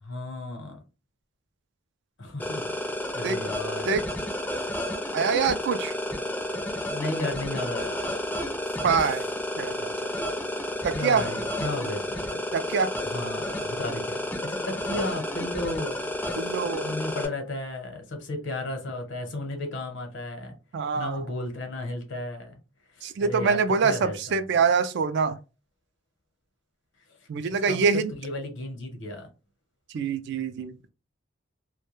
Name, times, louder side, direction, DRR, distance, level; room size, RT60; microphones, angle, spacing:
voice 1, 0.0-0.8 2.2-2.7 3.1-3.9 6.9-8.0 10.9-12.4 13.1-16.4 16.8-20.5 20.9-22.5 22.9-24.4 27.1-27.2 27.7-27.9 28.2-29.3, left 2 dB, 65° left, 0.8 m, -34 dB
sound 1, 2.4-17.2, left 1 dB, 10° left, 0.4 m, -31 dB
voice 2, 5.1-5.9 8.8-9.3 9.6-10.1 10.8-11.3 12.5-12.9 16.4-16.9 20.7-21.2 23.0-25.4 27.3-28.1 29.9-30.8, right 5 dB, 60° right, 0.3 m, -25 dB
2.2 x 2.1 x 3.0 m
head